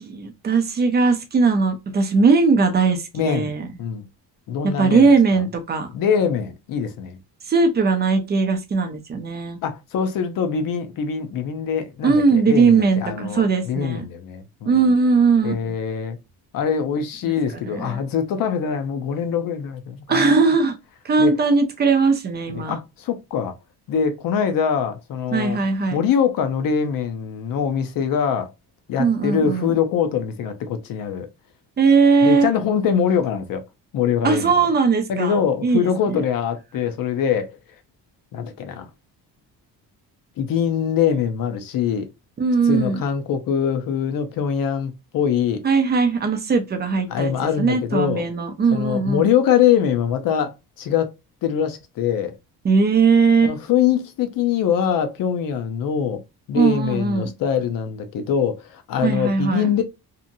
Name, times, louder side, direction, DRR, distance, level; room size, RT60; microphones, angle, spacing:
voice 1, 0.0-3.7 4.6-5.9 7.5-9.6 12.0-14.0 14.7-15.5 17.7-18.0 20.1-20.7 21.0-22.7 25.3-26.0 29.0-29.8 31.8-32.5 34.2-35.4 35.6-35.9 42.4-43.0 45.6-47.3 47.6-49.2 52.6-53.6 56.5-57.3 59.0-59.7, right 4 dB, 25° right, 0.5 m, -19 dB
voice 2, 3.1-3.5 3.8-4.1 4.5-5.4 5.9-7.2 9.6-14.9 15.4-16.2 16.5-20.5 21.2-21.3 22.5-23.5 23.9-25.6 25.9-28.5 28.9-31.3 32.2-33.6 33.9-34.5 35.1-37.5 38.3-38.9 40.4-42.1 42.6-45.6 47.1-48.3 48.7-51.1 51.4-52.3 53.4-56.2 56.5-59.8, left 8 dB, 55° left, 0.6 m, -23 dB
2.8 x 2.5 x 2.6 m
cardioid pair, 165°, 41 cm